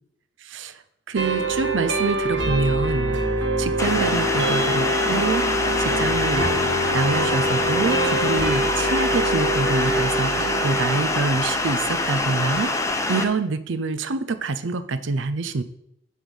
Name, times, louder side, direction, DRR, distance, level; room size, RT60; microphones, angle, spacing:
voice 1, 1.1-3.2 3.6-5.4 5.8-6.5 6.9-12.8 13.1-15.6, right 3 dB, 90° right, 12 dB, 0.6 m, -26 dB
sound 1, 1.2-12.2, right 4 dB, 65° right, 1.1 m, -27 dB
Wind instrument woodwind instrument, 1.7-10.3, left 2 dB, 20° right, 0.4 m, -28 dB
sound 2, 3.8-13.2, left 2 dB, 15° left, 0.7 m, -25 dB
10.0 x 3.6 x 6.3 m, 0.76 s
head